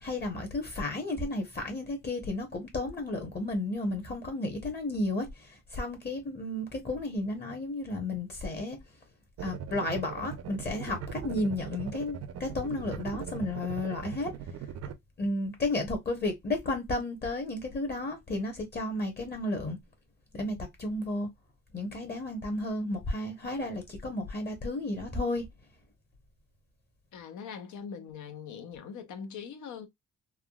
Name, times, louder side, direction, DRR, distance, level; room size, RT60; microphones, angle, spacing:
voice 1, 0.0-8.8 9.4-14.3 15.2-19.8 20.3-21.3 21.7-25.4, left 2 dB, 35° left, 1.0 m, -33 dB
sound 1, 9.4-14.9, right 8 dB, 55° right, 0.6 m, -40 dB
voice 2, 27.1-29.9, left 6 dB, 75° left, 0.8 m, -42 dB
3.5 x 2.2 x 2.3 m
cardioid pair, 90°, 30 cm